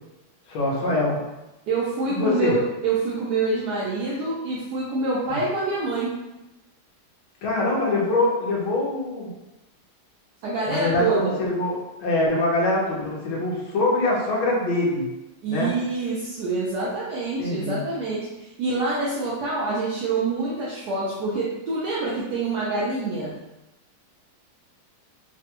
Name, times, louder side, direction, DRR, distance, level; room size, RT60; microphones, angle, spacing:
voice 1, 0.5-1.2 2.1-2.6 5.3-5.4 7.4-9.3 10.6-15.1 15.5-15.7 17.4-17.8, left 2 dB, 75° left, -4 dB, 1.7 m, -24 dB
voice 2, 1.7-6.1 10.4-11.4 15.4-23.3, right 3 dB, 70° right, -6 dB, 1.0 m, -26 dB
3.9 x 2.2 x 2.9 m, 0.98 s
omnidirectional pair, 2.2 m